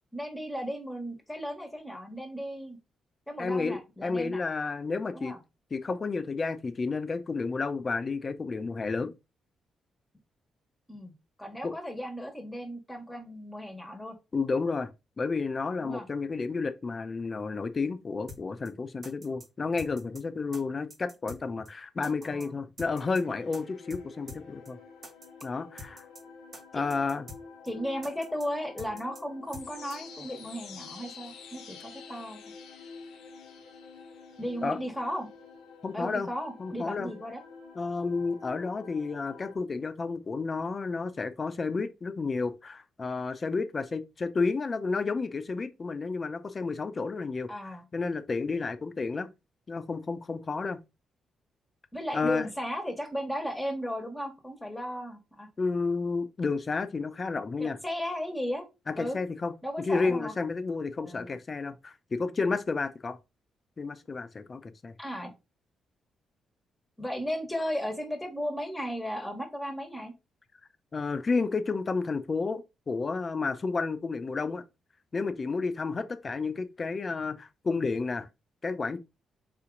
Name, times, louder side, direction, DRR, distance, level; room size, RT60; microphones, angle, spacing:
voice 1, 0.1-2.8 3.3-4.4 5.1-5.4 10.9-11.1 11.4-14.2 15.8-16.1 22.2-22.6 26.7-26.8 27.6-32.4 34.4-35.3 35.9-37.4 47.5-47.8 51.9-55.5 57.6-58.6 59.0-59.2 59.6-60.3 61.0-61.3 65.0-65.3 67.0-70.1, equal, 10° left, 1.4 m, -35 dB
voice 2, 3.4-5.3 5.7-9.1 11.6-11.7 14.3-14.9 15.2-24.8 25.4-26.0 26.7-27.3 34.6-34.8 35.8-36.3 36.6-37.1 37.7-47.5 47.9-49.3 49.7-50.8 52.1-52.5 55.6-57.8 58.9-63.2 63.8-64.9 70.9-74.6 75.1-78.3 78.6-79.0, left 4 dB, 40° left, 0.6 m, -31 dB
sound 1, 18.3-18.4 18.7-18.8 19.0-19.5 19.8-20.2 20.5-20.6 20.9-21.4 21.7-21.8 22.0-22.5 22.8-23.2 23.5-23.6 23.9-24.0 24.3-24.4 24.7-24.8 25.0-25.5 25.8-26.2 26.5-26.6 26.9-27.4 27.7-27.8 28.0-28.5 28.8-29.2 29.5-29.7 29.9-30.0, equal, 55° right, 1.4 m, -45 dB
sound 2, 22.9-39.6, left 5 dB, 85° left, 0.8 m, -48 dB
4.2 x 2.8 x 3.8 m
supercardioid pair, 55°, 0 cm